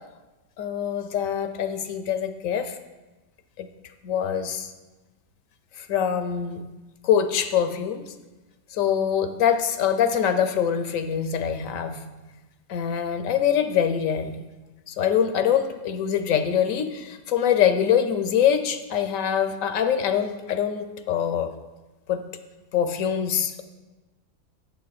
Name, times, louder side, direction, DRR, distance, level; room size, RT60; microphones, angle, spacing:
voice 1, 0.6-2.8 3.6-3.7 4.0-4.7 5.8-6.6 7.0-8.0 8.7-12.1 12.7-14.3 14.9-21.5 22.1-22.2 22.7-23.6, left 8 dB, 75° left, 9 dB, 1.0 m, -24 dB
8.4 x 6.9 x 4.1 m, 1.2 s
omnidirectional pair, 1.5 m